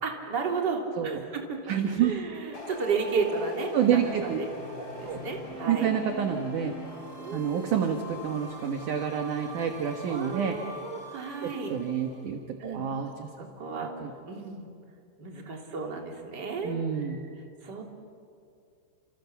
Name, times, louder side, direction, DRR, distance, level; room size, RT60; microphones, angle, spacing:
voice 1, 0.0-1.6 2.0-4.1 4.4-4.5 4.8-5.9 7.2-7.7 10.1-11.7 12.6-12.9 13.6-13.9 14.3-14.7 15.2-17.3 17.6-17.8, right 4 dB, 25° right, 1 dB, 3.0 m, -33 dB
voice 2, 1.7-2.1 3.7-4.4 5.0-5.2 5.7-6.8 7.3-10.6 11.4-13.3 14.0-14.1 16.6-17.2, right 8 dB, 60° right, 4 dB, 2.4 m, -28 dB
sound 1, 2.5-12.2, left 1 dB, 25° left, 4.2 m, -43 dB
30.0 x 27.5 x 7.1 m, 2.4 s
omnidirectional pair, 5.0 m